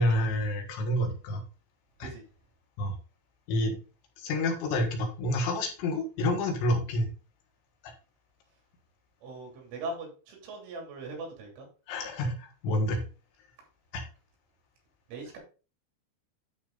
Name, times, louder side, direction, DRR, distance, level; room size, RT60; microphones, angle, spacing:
voice 1, 0.0-1.4 2.0-2.1 2.8-2.9 3.5-3.7 4.2-7.1 7.8-7.9 11.9-13.0 13.9-14.0, left 1 dB, 70° left, 2 dB, 3.7 m, -28 dB
voice 2, 9.2-11.7 15.1-15.4, right 2 dB, 75° right, 0 dB, 5.4 m, -40 dB
12.0 x 4.2 x 3.9 m, 0.35 s
omnidirectional pair, 5.6 m